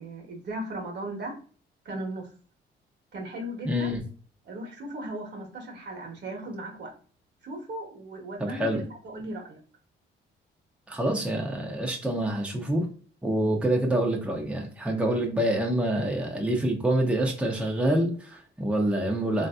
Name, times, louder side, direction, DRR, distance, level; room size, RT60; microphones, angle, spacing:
voice 1, 0.0-1.4 1.8-2.3 3.1-3.9 4.4-6.9 7.4-9.6, right 1 dB, 60° right, 1 dB, 1.2 m, -37 dB
voice 2, 3.6-4.0 8.4-8.8 10.9-12.9 13.2-19.5, right 1 dB, 5° right, 0 dB, 0.7 m, -26 dB
3.2 x 2.7 x 2.3 m, 0.42 s
cardioid pair, 90°, 20 cm